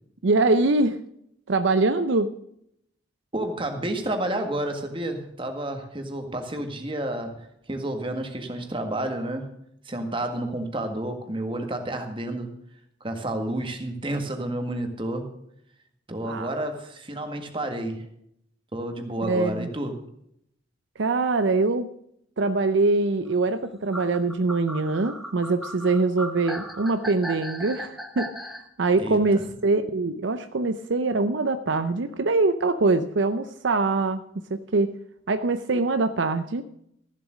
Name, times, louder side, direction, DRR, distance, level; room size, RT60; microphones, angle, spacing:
voice 1, 0.2-1.0 1.5-2.3 16.2-16.5 19.3-19.7 21.0-21.9 22.4-28.3 28.8-34.2 34.5-34.9 35.3-36.6, right 3 dB, 65° right, 10 dB, 0.6 m, -23 dB
voice 2, 3.3-9.5 9.8-12.5 13.0-15.2 16.1-18.0 18.7-20.0 29.0-29.4, right 1 dB, 25° right, 5 dB, 1.7 m, -30 dB
sound 1, 23.9-28.6, equal, ahead, 1.1 m, -36 dB
14.0 x 7.6 x 6.2 m, 0.73 s
head